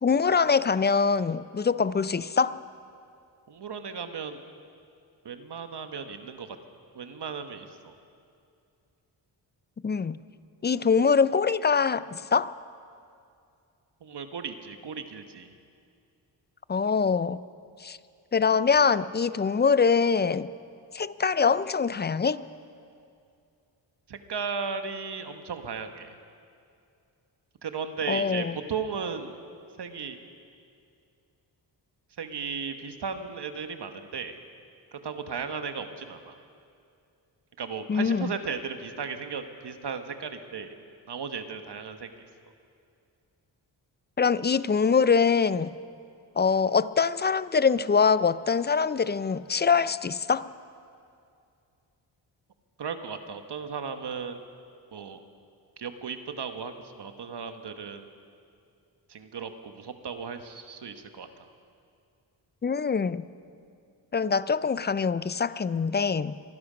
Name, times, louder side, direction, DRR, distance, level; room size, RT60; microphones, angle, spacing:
voice 1, 0.0-2.6 9.8-10.2 10.6-12.5 16.7-17.4 17.8-18.0 18.3-20.5 20.9-22.4 28.1-28.6 37.9-38.3 44.2-45.7 46.4-50.5 62.6-63.3 64.1-66.4, left 5 dB, 25° left, 0.4 m, -24 dB
voice 2, 3.5-4.4 5.2-6.6 6.9-7.9 14.0-15.5 24.1-26.1 27.6-29.3 29.8-30.2 32.2-34.4 34.9-36.4 37.6-40.7 41.1-42.1 52.8-54.4 54.9-55.2 55.8-58.1 59.1-61.3, right 5 dB, 55° right, 1.3 m, -35 dB
23.5 x 11.5 x 5.1 m
cardioid pair, 50°, 48 cm